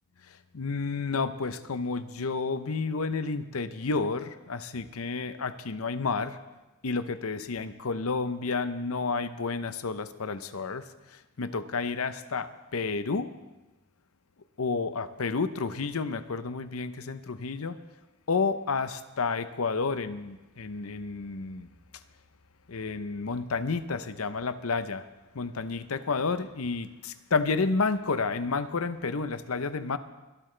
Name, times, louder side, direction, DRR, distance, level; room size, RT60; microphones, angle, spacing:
voice 1, 0.5-6.4 6.8-10.8 11.4-13.3 14.6-17.8 18.3-21.7 22.7-25.0 25.3-30.0, left 4 dB, 80° left, 12 dB, 0.8 m, -30 dB
22.5 x 13.0 x 3.3 m, 1.1 s
head